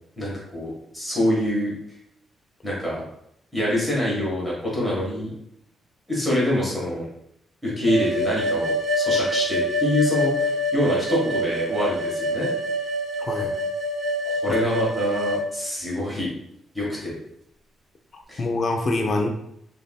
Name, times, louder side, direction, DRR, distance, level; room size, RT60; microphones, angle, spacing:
voice 1, 0.2-1.7 2.6-3.1 3.5-5.3 6.1-7.0 7.6-12.5 14.2-16.3 16.7-17.1 18.3-18.4, left 1 dB, 5° right, -6 dB, 1.4 m, -25 dB
sound 1, 7.9-15.4, equal, 45° right, 0.5 m, -25 dB
voice 2, 13.2-13.6 14.5-14.6 18.1-19.3, left 2 dB, 30° left, 2 dB, 0.5 m, -25 dB
6.6 x 2.7 x 2.2 m, 0.74 s
wide cardioid pair, 175°, 0 cm